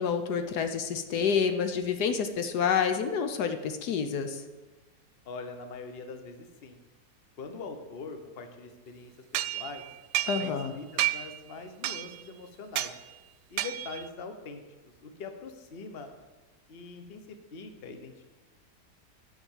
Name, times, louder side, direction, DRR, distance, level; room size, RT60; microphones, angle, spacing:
voice 1, 0.0-4.4 10.3-10.7, left 6 dB, 75° left, 7 dB, 1.3 m, -28 dB
voice 2, 5.2-6.8 7.4-9.8 10.4-12.9 13.5-14.6 15.0-16.1 16.7-18.1, left 4 dB, 40° left, 7 dB, 1.1 m, -43 dB
sound 1, 9.3-10.7 11.0-11.4 11.8-12.3 12.8-13.0 13.6-14.1, right 14 dB, 80° right, 1.1 m, -31 dB
10.0 x 6.0 x 7.3 m, 1.2 s
omnidirectional pair, 1.8 m